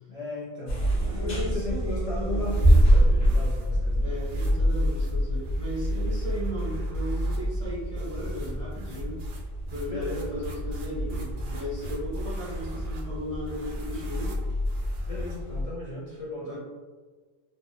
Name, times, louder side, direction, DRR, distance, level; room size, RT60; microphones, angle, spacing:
voice 1, 0.1-0.8 1.2-4.1 9.9-10.3 15.1-16.6, left 2 dB, 55° left, -5 dB, 0.4 m, -36 dB
sound 1, 0.7-15.6, equal, 75° left, 1.5 m, -26 dB
voice 2, 1.0-2.5 4.0-9.2 9.7-14.4 16.4-16.6, equal, 10° left, -8 dB, 0.7 m, -36 dB
sound 2, 1.8-15.6, right 1 dB, 70° right, 0.8 m, -49 dB
3.5 x 2.0 x 2.2 m, 1.4 s
omnidirectional pair, 1.1 m